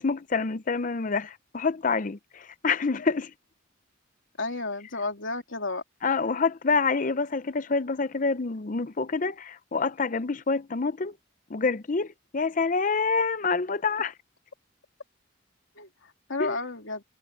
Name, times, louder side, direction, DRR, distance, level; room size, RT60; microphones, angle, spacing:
voice 1, 0.0-3.3 6.0-11.1 11.5-12.1 12.3-14.1 16.4-16.6, left 4 dB, 40° left, 0.6 m, -27 dB
voice 2, 4.4-5.8 15.7-15.9 16.3-17.0, left 3 dB, 75° left, 3.1 m, -31 dB
head